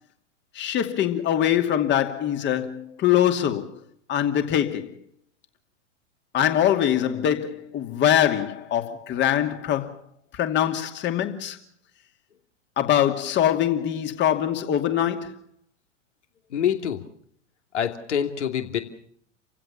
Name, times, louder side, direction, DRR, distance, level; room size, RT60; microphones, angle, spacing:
voice 1, 0.5-3.7 4.1-4.9 6.3-9.9 10.3-11.6 12.8-15.4, left 10 dB, 30° left, 2.6 m, -23 dB
voice 2, 16.5-17.0 17.7-18.8, left 9 dB, 65° left, 2.9 m, -25 dB
30.0 x 16.0 x 7.2 m
figure-of-eight pair, 95°, 38 cm